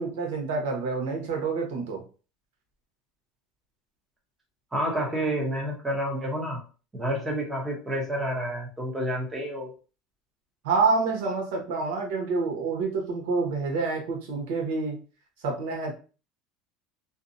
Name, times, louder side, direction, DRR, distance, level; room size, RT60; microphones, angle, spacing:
voice 1, 0.0-2.0 10.6-15.0 15.4-15.9, right 4 dB, 90° right, 1.0 m, -27 dB
voice 2, 4.7-6.6 6.9-9.7, equal, 10° right, 0.7 m, -29 dB
2.6 x 2.2 x 2.6 m
cardioid pair, 170°, 0 cm